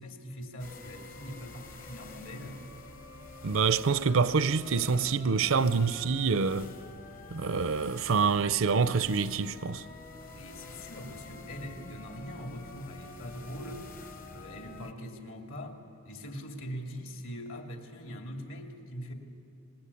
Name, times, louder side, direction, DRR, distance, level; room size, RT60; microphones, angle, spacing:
voice 1, 0.0-2.6 10.3-13.9 14.3-19.1, equal, 65° left, 2.6 m, -42 dB
sound 1, 0.6-14.9, left 3 dB, 40° left, 1.0 m, -47 dB
voice 2, 3.4-6.7 7.3-9.8, right 5 dB, 65° right, 0.5 m, -26 dB
26.5 x 19.5 x 8.5 m
head